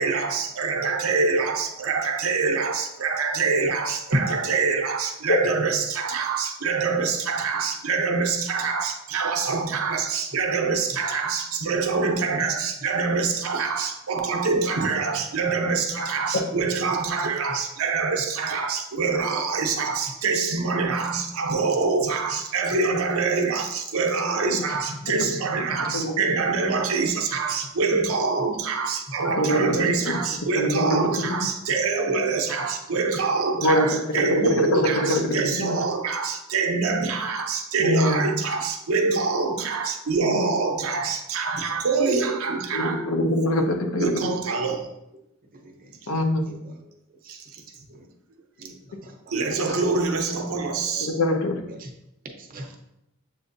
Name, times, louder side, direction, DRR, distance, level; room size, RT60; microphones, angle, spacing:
voice 1, 0.0-43.1 44.0-44.9 47.3-47.5 48.3-48.7 49.3-51.2, right 4 dB, 80° right, 4 dB, 0.6 m, -25 dB
voice 2, 24.7-26.0 29.2-29.3 45.6-45.9 46.5-46.7 47.2-47.4 47.9-48.1 48.6-48.8 49.0-49.1 50.8-51.0 51.7-51.9 52.2-52.8, equal, 45° right, 2 dB, 0.6 m, -40 dB
voice 3, 25.9-26.3 29.4-29.9 30.6-31.3 33.6-33.9 34.2-35.8 37.8-38.3 40.2-40.4 42.7-44.3 46.1-46.5 50.0-50.1 51.0-51.6, left 1 dB, 70° left, 4 dB, 0.6 m, -24 dB
7.2 x 2.5 x 2.6 m, 0.84 s
head